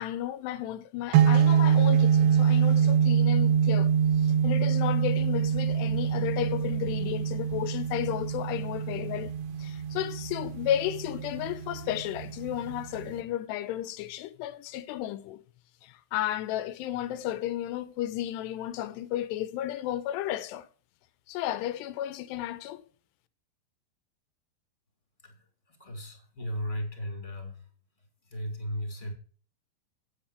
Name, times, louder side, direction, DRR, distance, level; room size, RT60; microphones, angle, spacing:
voice 1, 0.0-3.9 4.2-9.3 9.6-15.4 15.8-20.7 21.3-22.8, left 12 dB, 85° left, 2.8 m, -33 dB
sound 1, 1.1-13.2, right 8 dB, 70° right, 2.5 m, -25 dB
voice 2, 25.8-27.6 28.3-29.1, equal, 15° left, 2.4 m, -35 dB
9.4 x 8.8 x 4.7 m
omnidirectional pair, 5.0 m